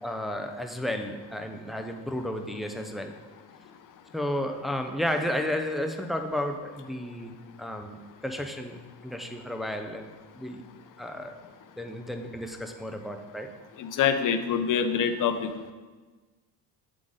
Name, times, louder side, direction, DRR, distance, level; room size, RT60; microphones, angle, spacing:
voice 1, 0.0-3.1 4.1-10.6 11.0-11.4 11.8-13.5, left 1 dB, ahead, 5 dB, 0.5 m, -33 dB
voice 2, 13.8-15.6, left 7 dB, 50° left, 9 dB, 0.7 m, -25 dB
7.7 x 3.8 x 5.0 m, 1.3 s
cardioid pair, 105°, 41 cm